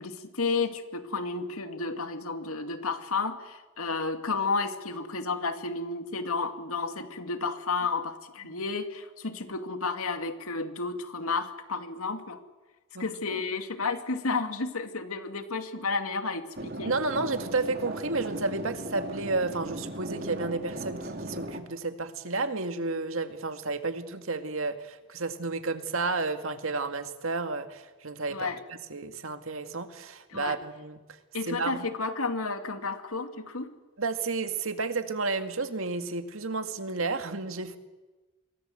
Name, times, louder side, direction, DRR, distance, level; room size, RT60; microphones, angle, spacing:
voice 1, 0.0-12.4 13.0-16.9 28.3-28.6 30.3-30.6 31.3-33.7, left 4 dB, 85° left, 7 dB, 2.5 m, -32 dB
sound 1, 16.5-21.6, right 1 dB, 45° right, 2.7 m, -37 dB
voice 2, 16.9-31.0 31.4-31.7 34.0-37.8, right 3 dB, 70° right, 8 dB, 2.0 m, -31 dB
27.0 x 23.5 x 8.0 m, 1.2 s
head